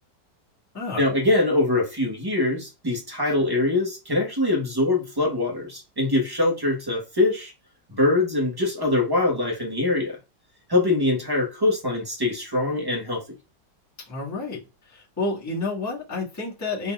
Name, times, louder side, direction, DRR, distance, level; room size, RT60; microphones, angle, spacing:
voice 1, 1.0-7.5 7.9-10.2 10.7-13.2, left 2 dB, 15° right, 1.0 m, -23 dB
voice 2, 14.1-14.6 14.9-16.9, left 3 dB, 10° left, 1.4 m, -30 dB
4.1 x 3.7 x 2.3 m
omnidirectional pair, 1.9 m